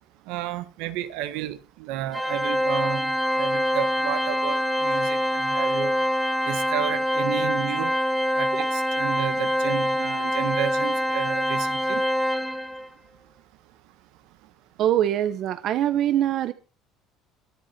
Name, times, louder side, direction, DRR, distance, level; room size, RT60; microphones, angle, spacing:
voice 1, 0.2-5.9 6.4-7.9 8.3-12.0, right 13 dB, 80° right, 1.6 m, -32 dB
Organ, 2.1-12.9, equal, ahead, 0.9 m, -25 dB
Wind instrument woodwind instrument, 3.2-7.2, left 15 dB, 55° left, 0.9 m, -42 dB
voice 2, 14.8-16.5, right 11 dB, 50° right, 1.1 m, -23 dB
23.5 x 8.1 x 4.5 m
cardioid pair, 140°, 0 cm